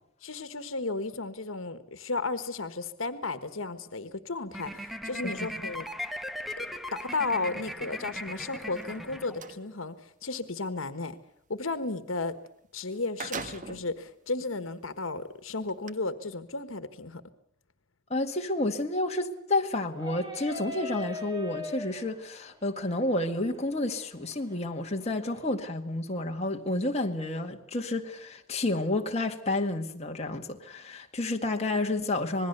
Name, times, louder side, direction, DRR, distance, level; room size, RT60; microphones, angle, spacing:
voice 1, 0.2-5.9 6.6-11.1 11.5-12.4 12.7-17.2, left 3 dB, 85° left, 1.4 m, -34 dB
sound 1, 4.5-9.8, left 1 dB, ahead, 1.2 m, -38 dB
sound 2, 8.7-9.6 12.5-12.6 12.9-14.0 14.6-14.7 15.7-15.9, right 4 dB, 40° right, 1.3 m, -40 dB
voice 2, 18.1-32.5, left 2 dB, 35° left, 2.0 m, -30 dB
sound 3, 19.9-25.5, left 2 dB, 20° right, 3.4 m, -42 dB
27.0 x 20.5 x 6.8 m
head